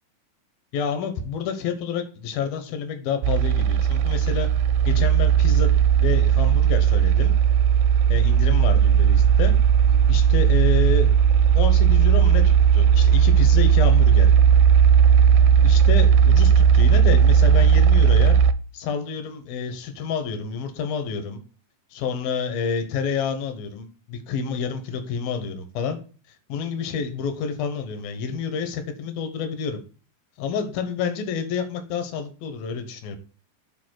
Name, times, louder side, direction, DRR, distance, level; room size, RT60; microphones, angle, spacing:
voice 1, 0.7-4.5 4.9-7.3 8.1-9.6 10.1-11.1 11.5-14.3 15.6-18.4 18.7-21.4 21.9-26.0 26.5-29.8 30.4-33.2, left 6 dB, 75° left, 8 dB, 2.8 m, -29 dB
sound 1, 3.2-18.5, right 8 dB, 90° right, 2.6 m, -16 dB
7.7 x 4.1 x 6.3 m, 0.38 s
omnidirectional pair, 4.5 m